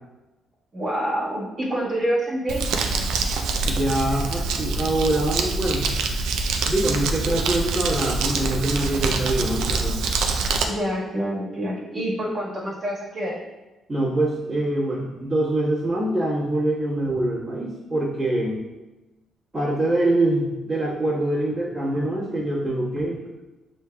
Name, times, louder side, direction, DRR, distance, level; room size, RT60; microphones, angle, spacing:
voice 1, 0.7-3.0 10.6-13.4, equal, 45° right, -6 dB, 1.5 m, -27 dB
Crumpling crinkling, 2.5-10.6, right 4 dB, 85° right, 0.4 m, -25 dB
voice 2, 3.6-5.8 6.7-10.0 13.9-18.6 19.5-23.2, right 1 dB, 25° right, -10 dB, 1.3 m, -24 dB
6.4 x 3.2 x 2.2 m, 1.1 s
cardioid pair, 90°, 0 cm